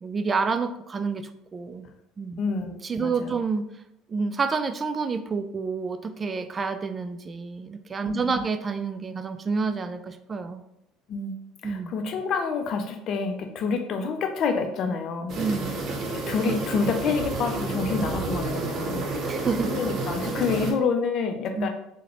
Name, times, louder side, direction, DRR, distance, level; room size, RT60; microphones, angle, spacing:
voice 1, 0.0-1.9 2.2-2.4 2.8-3.7 4.1-10.6 11.6-11.9 15.4-15.8 19.2-19.7 21.6-21.7, right 4 dB, 30° right, 10 dB, 0.3 m, -29 dB
voice 2, 2.4-3.4 8.1-8.4 11.1-11.4 11.6-15.4 16.1-19.3 19.6-21.7, left 5 dB, 55° left, 6 dB, 0.5 m, -28 dB
sound 1, 15.3-20.7, right 2 dB, 50° right, 0.8 m, -30 dB
3.7 x 2.1 x 3.0 m, 0.81 s
hypercardioid pair, 65°, 0 cm